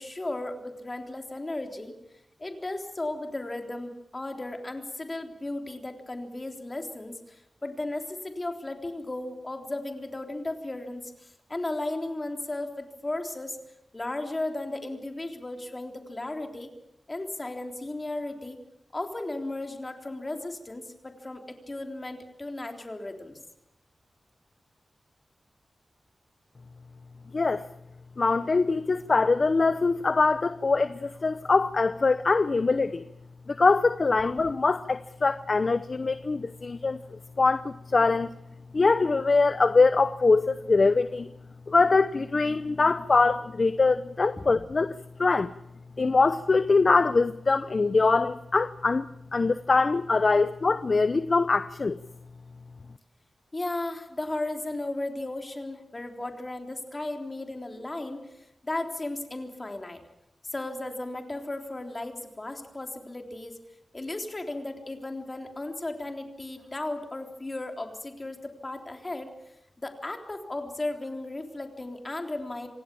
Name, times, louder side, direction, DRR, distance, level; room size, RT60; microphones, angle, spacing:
voice 1, 0.0-1.9 2.4-13.6 13.9-16.7 17.1-18.6 18.9-23.4 44.4-44.5 53.5-60.0 60.5-63.6 63.9-69.3 69.8-72.7, left 2 dB, 30° left, 3.6 m, -35 dB
voice 2, 27.3-27.6 28.2-33.0 33.5-37.0 37.4-38.3 38.7-41.3 41.7-44.9 45.2-45.5 46.0-49.0 49.3-52.0, left 3 dB, 45° left, 0.7 m, -23 dB
26.5 x 18.0 x 7.0 m
wide cardioid pair, 95°, 0 cm